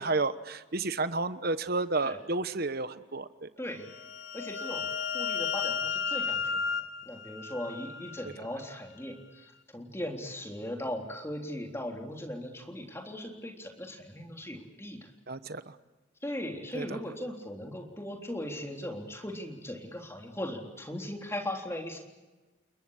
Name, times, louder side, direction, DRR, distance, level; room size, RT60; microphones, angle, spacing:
voice 1, 0.0-3.5 15.3-15.7 16.7-17.0, right 3 dB, 50° right, 13 dB, 1.1 m, -31 dB
sound 1, 3.8-8.3, left 6 dB, 75° left, 1.4 m, -33 dB
voice 2, 4.3-6.7 7.1-15.1 16.2-22.0, left 1 dB, 15° left, 2 dB, 3.6 m, -38 dB
30.0 x 21.5 x 6.6 m, 1.2 s
head